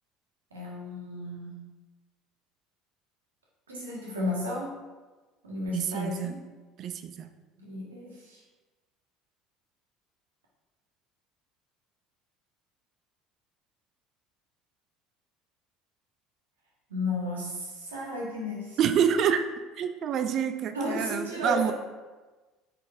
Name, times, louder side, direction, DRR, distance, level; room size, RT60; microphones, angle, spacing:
voice 1, 0.5-1.6 3.7-4.7 5.4-6.4 7.6-8.4 16.9-18.8 20.7-21.7, left 2 dB, 80° right, -3 dB, 1.5 m, -33 dB
voice 2, 5.7-6.4 6.8-7.3 18.8-19.5 19.8-21.7, right 8 dB, 45° right, 9 dB, 0.5 m, -27 dB
9.0 x 4.2 x 3.4 m, 1.2 s
figure-of-eight pair, 65°, 0 cm